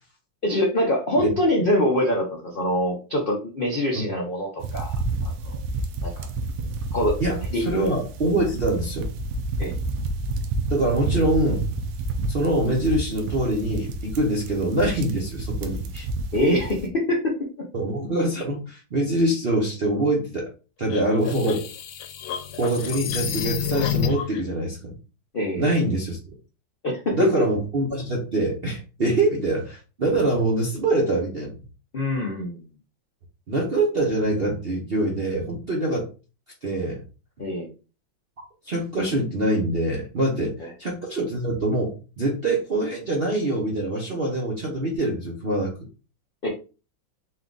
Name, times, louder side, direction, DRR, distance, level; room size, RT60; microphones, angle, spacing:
voice 1, 0.4-5.6 6.0-6.3 6.9-7.2 7.5-7.6 9.6-9.7 16.3-17.3 25.3-25.7 26.8-27.2 31.9-32.6 37.4-37.7 40.6-40.7 46.4-46.5, left 1 dB, 60° left, -1 dB, 0.5 m, -24 dB
sound 1, 4.6-16.9, right 2 dB, 85° right, 1.4 m, -30 dB
voice 2, 7.2-9.1 10.7-11.7 12.3-16.1 17.7-20.5 20.8-21.7 22.6-24.9 25.6-26.2 27.1-31.6 33.5-36.1 36.6-37.0 38.6-40.5 40.8-45.8, right 1 dB, 50° right, -1 dB, 0.7 m, -24 dB
sound 2, 20.9-24.4, left 8 dB, 90° left, 1.4 m, -28 dB
4.4 x 2.4 x 3.8 m, 0.33 s
omnidirectional pair, 2.1 m